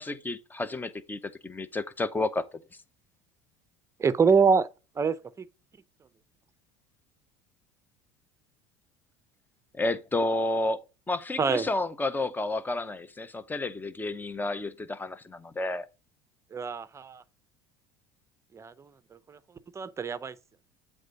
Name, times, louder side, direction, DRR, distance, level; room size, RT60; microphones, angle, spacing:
voice 1, 0.0-2.5 9.7-15.9, left 2 dB, 15° left, 0.7 m, -31 dB
voice 2, 4.0-4.7 5.0-5.2 11.4-11.7 16.5-17.2 18.5-18.7 19.8-20.3, right 5 dB, 20° right, 0.6 m, -24 dB
8.1 x 3.5 x 5.2 m
supercardioid pair, 115°, 14 cm